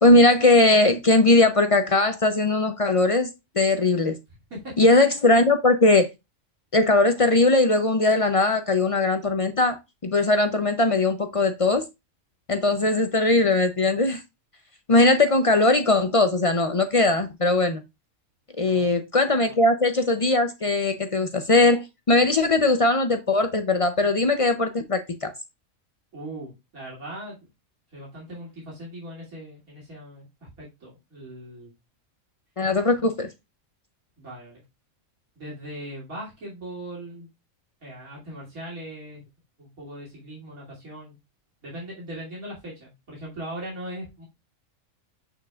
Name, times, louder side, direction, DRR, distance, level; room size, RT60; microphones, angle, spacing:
voice 1, 0.0-3.3 3.6-4.2 4.8-6.1 6.7-9.8 10.0-11.8 12.5-14.2 14.9-17.8 18.6-25.3 32.6-33.3, left 2 dB, 55° left, 0.3 m, -20 dB
voice 2, 4.3-4.8 12.8-12.9 18.6-18.9 19.5-19.6 26.1-27.4 27.9-31.7 34.2-34.6 35.4-37.3 37.8-39.3 39.6-41.2 41.6-44.2, right 1 dB, 80° right, 3.1 m, -39 dB
6.8 x 6.5 x 2.3 m
omnidirectional pair, 1.5 m